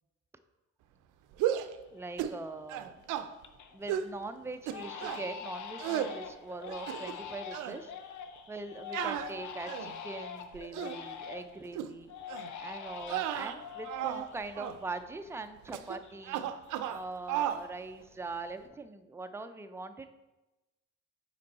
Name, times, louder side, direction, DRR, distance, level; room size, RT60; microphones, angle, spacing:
sound 1, 1.3-1.7 2.2-2.4 2.7-3.3 3.9-4.1 4.7-5.2 5.8-6.1 6.7-7.2 7.5-7.8 8.9-10.0 10.5-11.0 11.7-11.9 12.3-12.5 13.0-14.3 14.5-14.8 15.7-16.0 16.2-17.0 17.3-17.6, right 11 dB, 90° right, 0.5 m, -34 dB
Crying sobbing, 1.5-1.6 2.1-2.5 2.9-3.8 4.1-4.2 4.7-11.6 12.1-15.4 15.7-17.2 17.5-18.0, left 7 dB, 70° left, 0.7 m, -44 dB
voice 1, 1.9-3.0 3.7-7.9 8.5-12.1 12.6-16.5 16.9-20.1, right 3 dB, 10° right, 8 dB, 0.4 m, -42 dB
5.1 x 4.6 x 4.1 m, 1.0 s
cardioid pair, 90°, 30 cm